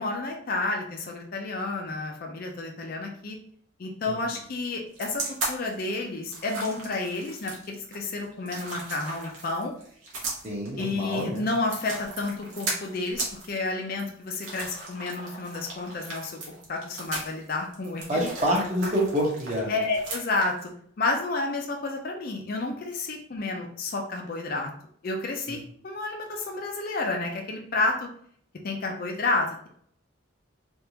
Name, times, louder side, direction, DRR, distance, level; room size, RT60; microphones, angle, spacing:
voice 1, 0.0-3.4 3.8-5.2 5.5-9.7 10.8-16.4 16.7-18.3 19.7-20.7 21.0-24.7 25.0-28.1 28.6-29.7, left 3 dB, 45° left, 1 dB, 0.5 m, -30 dB
sound 1, 4.9-20.7, right 2 dB, 75° right, 1.1 m, -37 dB
voice 2, 10.4-11.4 18.1-19.8 25.5-25.6, equal, 35° right, -3 dB, 1.0 m, -27 dB
3.4 x 2.5 x 2.8 m, 0.62 s
head